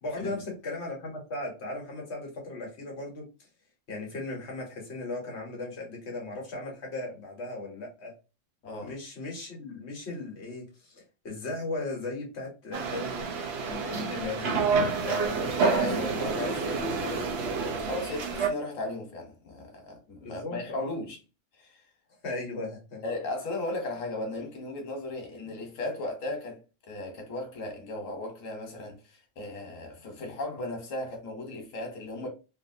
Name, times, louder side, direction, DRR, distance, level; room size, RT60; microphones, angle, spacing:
voice 1, 0.0-3.2 3.9-8.1 8.8-15.5 20.2-20.9 22.2-23.0, left 2 dB, 60° left, 1.3 m, -37 dB
voice 2, 8.6-8.9 15.8-21.2 21.6-21.8 23.0-26.6 26.9-32.3, left 2 dB, 85° left, 1.4 m, -36 dB
sound 1, 12.7-18.5, right 4 dB, 60° right, 0.8 m, -28 dB
3.1 x 2.6 x 2.6 m
omnidirectional pair, 1.3 m